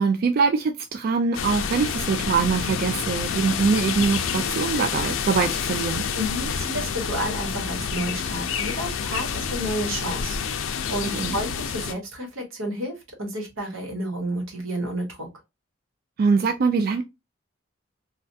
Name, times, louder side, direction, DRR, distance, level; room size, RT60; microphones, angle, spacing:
voice 1, 0.0-6.0 11.1-11.4 16.2-17.0, right 5 dB, 50° right, 0.3 m, -23 dB
sound 1, 1.3-11.9, left 6 dB, 80° left, 0.4 m, -28 dB
voice 2, 6.1-15.3, right 1 dB, 90° right, 1.2 m, -31 dB
3.3 x 2.3 x 2.6 m
head